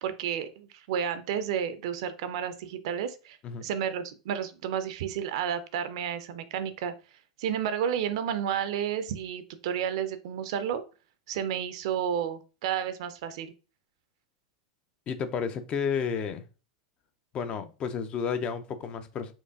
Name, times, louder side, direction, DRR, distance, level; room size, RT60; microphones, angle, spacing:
voice 1, 0.0-6.9 7.4-10.8 11.3-13.5, right 8 dB, 60° right, 0.4 m, -31 dB
voice 2, 15.1-16.4 17.3-19.3, left 6 dB, 30° left, 0.4 m, -31 dB
4.5 x 2.5 x 2.4 m
figure-of-eight pair, 90°, 3 cm